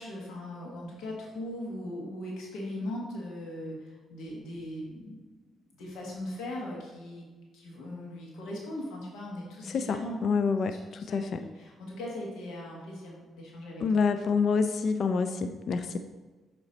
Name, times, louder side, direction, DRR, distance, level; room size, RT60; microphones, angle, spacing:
voice 1, 0.0-5.2 5.7-7.3 7.5-10.2 11.0-13.8, left 1 dB, 85° left, -3 dB, 1.4 m, -39 dB
voice 2, 9.7-11.4 13.8-16.0, left 5 dB, 55° left, 8 dB, 0.3 m, -27 dB
7.8 x 3.0 x 4.1 m, 1.3 s
cardioid pair, 90°, 0 cm